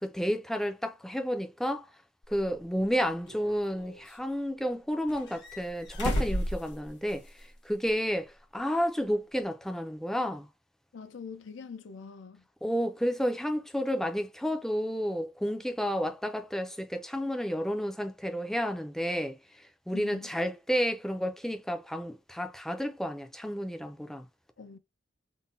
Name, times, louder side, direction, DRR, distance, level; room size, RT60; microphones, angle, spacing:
voice 1, 0.0-1.9 2.3-10.5 12.6-19.4 19.9-24.3, equal, ahead, 0.4 m, -31 dB
sound 1, 2.3-2.4 3.3-4.2 5.1-7.4 7.7-7.8 9.4-9.5, equal, 65° left, 1.3 m, -34 dB
voice 2, 10.9-12.4 19.9-20.3 24.6-24.8, left 5 dB, 80° left, 0.5 m, -44 dB
3.7 x 2.1 x 2.6 m
head